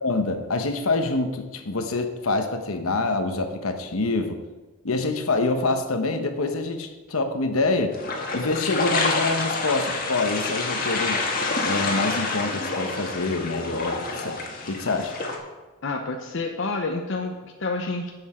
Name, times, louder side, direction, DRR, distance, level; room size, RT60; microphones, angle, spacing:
voice 1, 0.0-4.4 4.8-8.0 8.3-11.2 11.6-14.4 14.7-15.1, left 3 dB, 75° left, 7 dB, 1.0 m, -26 dB
sound 1, 7.9-15.4, left 3 dB, 40° left, 1.5 m, -28 dB
voice 2, 15.8-18.1, left 3 dB, 60° left, 3 dB, 0.7 m, -29 dB
11.0 x 7.9 x 4.4 m, 1.2 s
head